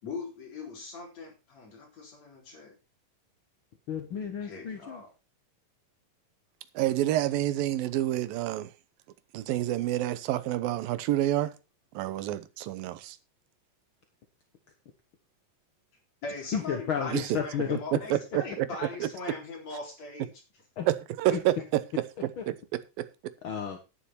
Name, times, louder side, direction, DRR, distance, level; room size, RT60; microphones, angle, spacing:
voice 1, 0.0-2.7 4.4-5.1 16.2-20.3 21.3-21.7, left 3 dB, 50° left, 0 dB, 5.0 m, -40 dB
voice 2, 3.9-5.0 16.5-17.8 20.8-20.9 22.4-22.5 23.4-23.8, left 8 dB, 65° left, 5 dB, 1.2 m, -32 dB
voice 3, 6.8-8.7 9.3-11.5 11.9-13.2 17.1-17.4 17.7-17.8 18.1-18.7 19.0-19.1 20.9-23.3, right 14 dB, 90° right, 14 dB, 2.7 m, -29 dB
10.0 x 10.0 x 4.3 m, 0.28 s
omnidirectional pair, 4.0 m